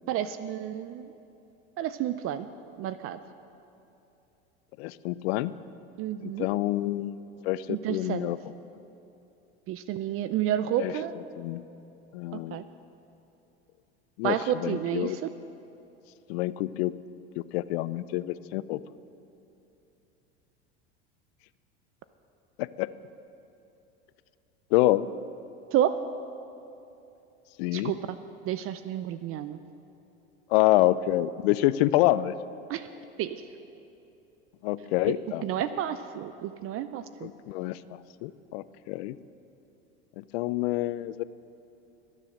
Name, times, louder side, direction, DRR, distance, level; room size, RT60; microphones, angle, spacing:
voice 1, 0.1-1.1 1.8-2.5 2.8-3.2 6.0-6.5 7.7-8.3 9.7-11.1 12.3-12.6 14.2-15.3 25.7-26.0 27.7-28.2 28.5-29.6 32.7-32.9 33.2-33.4 35.0-35.1 35.4-37.3, right 11 dB, 45° right, 12 dB, 0.5 m, -30 dB
voice 2, 4.8-5.5 6.4-7.1 7.4-8.4 10.8-10.9 11.4-11.6 12.1-12.7 14.2-14.4 14.6-15.2 16.3-16.9 17.4-18.8 22.6-22.9 24.7-25.1 27.6-27.9 30.5-32.3 34.6-35.4 37.2-37.8 38.2-39.1 40.3-41.2, left 16 dB, 70° left, 16 dB, 0.6 m, -26 dB
22.0 x 7.5 x 6.4 m, 2.8 s
hypercardioid pair, 100°, 33 cm